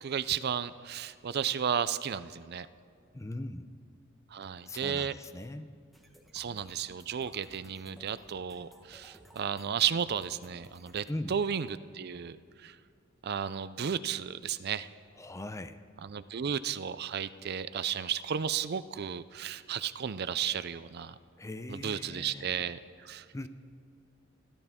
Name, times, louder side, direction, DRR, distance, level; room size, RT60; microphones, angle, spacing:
voice 1, 0.0-2.7 4.3-5.1 6.3-12.8 13.2-14.9 16.0-21.1 21.7-23.3, right 8 dB, 55° right, 14 dB, 0.4 m, -33 dB
voice 2, 3.1-3.7 4.7-5.7 11.1-11.4 15.2-15.8 21.4-22.5 23.3-23.5, left 1 dB, 15° left, 11 dB, 0.5 m, -40 dB
sound 1, 5.9-11.1, equal, ahead, 1.2 m, -58 dB
28.5 x 12.0 x 3.6 m, 2.3 s
head